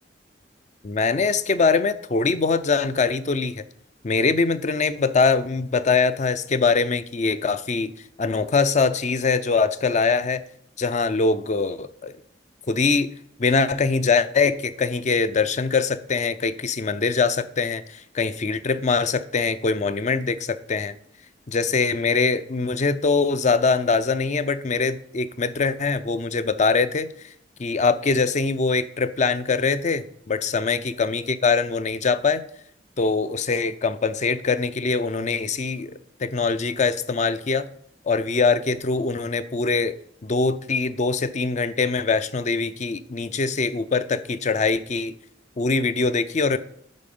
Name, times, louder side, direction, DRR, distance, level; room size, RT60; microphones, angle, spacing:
voice 1, 0.8-3.6 4.0-7.9 8.2-10.4 10.8-12.2 12.7-13.1 13.4-21.0 21.5-27.3 27.6-32.4 33.0-37.7 38.1-39.9 40.2-45.2 45.6-46.6, left 4 dB, 40° left, 0.5 m, -23 dB
10.5 x 4.2 x 5.3 m
head